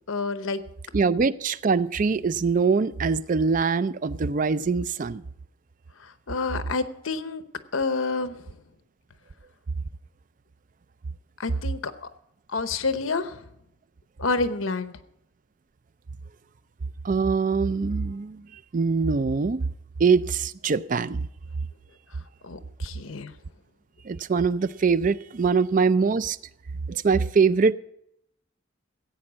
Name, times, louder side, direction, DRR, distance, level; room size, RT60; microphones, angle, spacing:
voice 1, 0.1-0.6 6.3-7.4 7.7-8.4 11.4-12.1 12.5-13.4 14.2-14.9 22.4-23.3, left 3 dB, 80° left, 0.9 m, -28 dB
voice 2, 0.9-5.2 17.0-18.4 18.7-19.6 20.0-21.3 24.1-26.4 26.9-27.7, right 5 dB, 40° right, 0.4 m, -23 dB
15.5 x 8.7 x 6.2 m
head